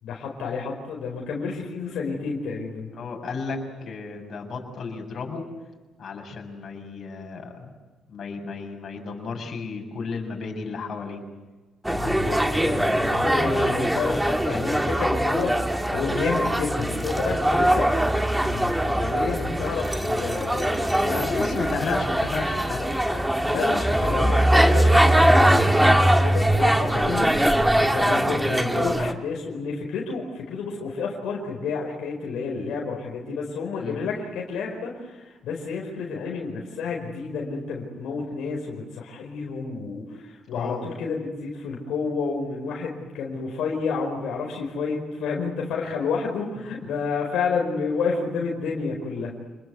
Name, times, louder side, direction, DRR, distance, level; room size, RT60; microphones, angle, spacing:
voice 1, 0.0-2.9 11.9-15.7 15.9-22.0 23.0-27.3 27.9-49.3, left 5 dB, 80° left, -1 dB, 5.0 m, -30 dB
voice 2, 2.9-5.4 6.0-7.7 8.1-11.2 20.9-23.1 26.9-27.1 33.8-34.0 40.5-40.9, left 4 dB, 55° left, 2 dB, 6.8 m, -33 dB
sound 1, 11.8-29.1, right 1 dB, 5° right, 1.9 m, -22 dB
29.0 x 21.5 x 8.2 m, 1.2 s
cardioid pair, 90°, 0 cm